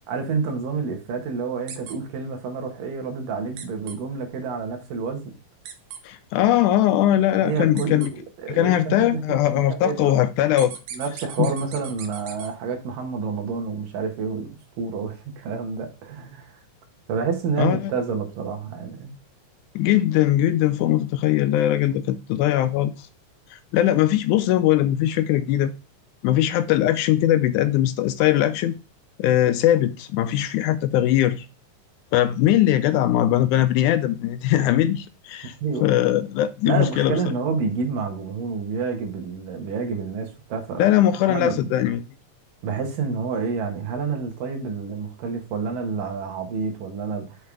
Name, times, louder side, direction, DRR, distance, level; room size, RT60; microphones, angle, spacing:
voice 1, 0.1-5.4 7.4-8.2 8.4-10.1 10.9-14.5 14.8-16.5 17.1-19.2 35.6-35.9 36.7-40.8 41.3-41.7 42.6-47.4, right 5 dB, 85° right, 3.1 m, -28 dB
sound 1, 1.7-1.9 3.6-3.9 5.6-6.0 7.8-8.1 10.6-12.5, right 8 dB, 70° right, 1.6 m, -38 dB
voice 2, 6.0-8.1 8.5-10.7 11.4-11.5 17.6-17.9 19.8-22.9 23.5-25.7 26.2-28.7 29.2-31.5 32.1-35.5 35.8-37.2 40.8-42.0, left 12 dB, 80° left, 1.9 m, -20 dB
6.7 x 5.6 x 3.3 m
omnidirectional pair, 3.7 m